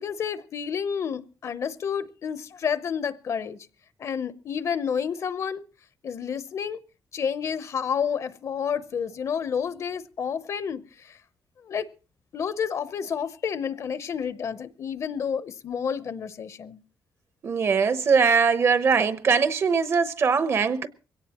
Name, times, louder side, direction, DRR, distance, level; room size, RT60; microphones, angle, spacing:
voice 1, 0.0-3.6 4.0-5.6 6.0-6.8 7.1-11.2 11.6-11.9 12.3-16.8, left 7 dB, 50° left, 0.8 m, -30 dB
voice 2, 17.4-20.9, right 5 dB, 45° right, 0.9 m, -21 dB
22.5 x 17.5 x 3.0 m
wide cardioid pair, 160°, 6 cm